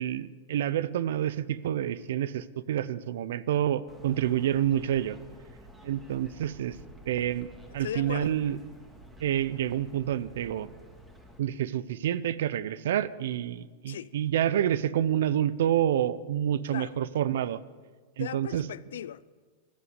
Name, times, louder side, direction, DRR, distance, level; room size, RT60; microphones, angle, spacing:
voice 1, 0.0-5.2 5.8-6.8 7.1-7.5 7.7-8.6 9.2-10.7 11.4-17.6 18.2-18.6, right 11 dB, 80° right, 0.7 m, -28 dB
sound 1, 3.9-11.4, right 1 dB, 10° right, 2.1 m, -51 dB
voice 2, 7.8-8.4 13.9-14.1 16.7-17.0 18.2-19.2, left 10 dB, 90° left, 0.4 m, -38 dB
14.5 x 11.5 x 8.1 m
supercardioid pair, 145°, 0 cm